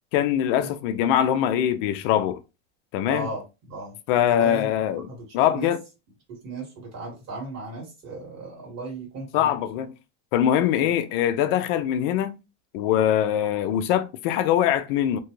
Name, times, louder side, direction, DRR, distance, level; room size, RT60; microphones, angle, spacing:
voice 1, 0.1-2.4 2.9-3.3 4.1-5.1 5.3-5.8 9.3-9.9 10.3-12.4 12.7-15.2, left 10 dB, 55° left, 0.4 m, -22 dB
voice 2, 3.0-4.7 5.1-5.3 5.5-5.7 6.3-9.6 10.8-10.9, right 2 dB, 45° right, 1.8 m, -36 dB
2.9 x 2.3 x 3.0 m
supercardioid pair, 160°, 35 cm